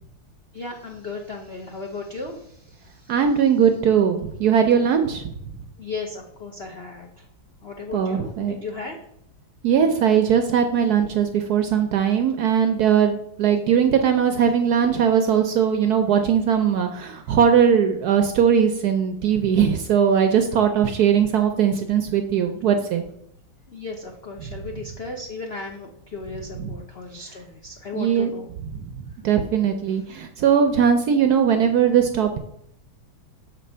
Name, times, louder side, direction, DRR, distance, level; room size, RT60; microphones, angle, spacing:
voice 1, 0.5-3.1 5.8-7.2 7.6-9.0 23.7-28.5, left 3 dB, 70° left, 2 dB, 0.5 m, -35 dB
voice 2, 3.1-5.3 7.9-8.6 9.6-23.0 26.5-26.8 27.9-28.3 28.6-28.7 29.2-32.4, right 8 dB, 70° right, 6 dB, 0.9 m, -20 dB
7.0 x 4.2 x 5.4 m, 0.72 s
omnidirectional pair, 2.2 m